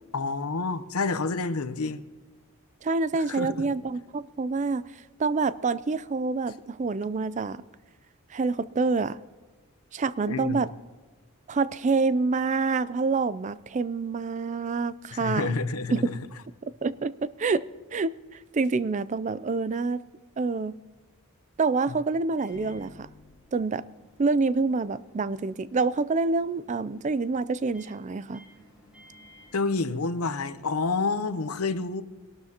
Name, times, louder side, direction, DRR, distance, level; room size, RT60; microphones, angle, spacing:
voice 1, 0.1-2.0 3.3-3.6 10.3-10.7 15.1-16.2 21.9-22.0 29.5-32.0, left 3 dB, 90° left, 0.8 m, -29 dB
voice 2, 2.8-4.8 5.2-7.6 8.3-9.2 9.9-10.7 11.5-15.6 15.9-16.0 16.8-17.6 17.9-18.1 18.5-20.0 20.4-20.8 21.6-23.1 23.5-23.8 24.2-28.4, right 4 dB, 35° right, 0.4 m, -27 dB
Microwave oven, 22.3-30.5, left 1 dB, 5° right, 3.9 m, -56 dB
23.5 x 12.5 x 2.9 m
head